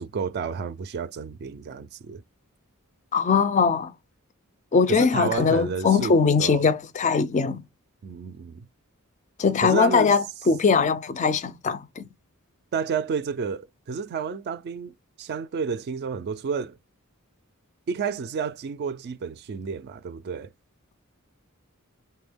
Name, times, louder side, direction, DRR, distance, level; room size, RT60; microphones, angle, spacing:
voice 1, 0.0-2.2 4.9-6.6 8.0-8.7 9.6-10.1 12.7-16.8 17.9-20.5, right 5 dB, 50° right, 0.3 m, -31 dB
voice 2, 3.1-3.9 4.7-7.6 9.4-12.1, left 5 dB, 35° left, 0.3 m, -21 dB
3.4 x 2.2 x 3.4 m
head